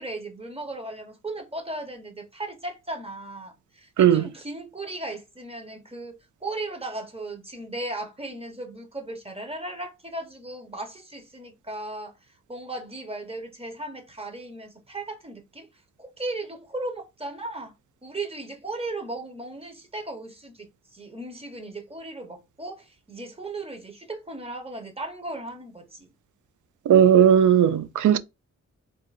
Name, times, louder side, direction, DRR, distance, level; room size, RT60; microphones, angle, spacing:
voice 1, 0.0-12.1 12.5-15.7 16.0-17.7 18.0-26.1, right 2 dB, 20° right, 1.1 m, -36 dB
voice 2, 26.9-28.2, right 9 dB, 90° right, 0.5 m, -17 dB
3.6 x 2.6 x 4.2 m
wide cardioid pair, 100°, 29 cm